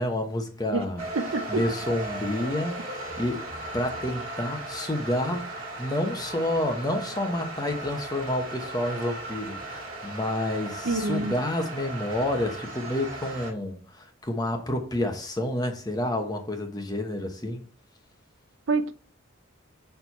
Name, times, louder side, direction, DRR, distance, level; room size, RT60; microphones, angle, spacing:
voice 1, 0.0-1.0 1.5-3.4 3.7-5.5 5.8-17.6, left 1 dB, 20° left, 1.0 m, -29 dB
sound 1, 1.0-13.5, right 2 dB, 45° right, 1.8 m, -37 dB
voice 2, 1.1-1.6 10.8-11.3 18.7-18.9, right 3 dB, 70° right, 0.7 m, -26 dB
6.3 x 4.6 x 4.1 m
head